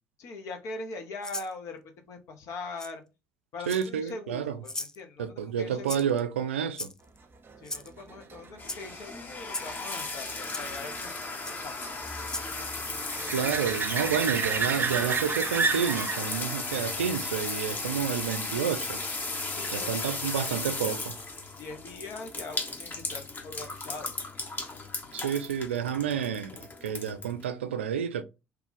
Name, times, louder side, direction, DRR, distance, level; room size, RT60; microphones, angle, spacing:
voice 1, 0.2-3.0 3.5-6.2 7.6-11.2 11.5-11.7 12.4-13.3 19.5-20.2 21.5-24.1 25.0-25.2, left 3 dB, 55° left, 0.8 m, -42 dB
Rattle (instrument), 1.2-1.5 2.8-2.9 3.6-4.1 4.6-5.0 5.9-6.2 6.7-7.2 7.6-7.9 8.6-8.8 9.5-9.7 10.5-10.6 11.4-11.6 12.2-12.5, left 2 dB, 10° left, 0.4 m, -37 dB
voice 2, 3.7-4.6 5.2-6.9 13.3-19.0 19.7-21.2 25.1-28.2, right 8 dB, 80° right, 0.3 m, -30 dB
sound 1, 7.5-18.7 24.4-24.5, right 5 dB, 35° right, 0.6 m, -34 dB
sound 2, 8.6-27.4, left 3 dB, 30° left, 0.9 m, -35 dB
2.9 x 2.3 x 3.8 m
figure-of-eight pair, 50°, 6 cm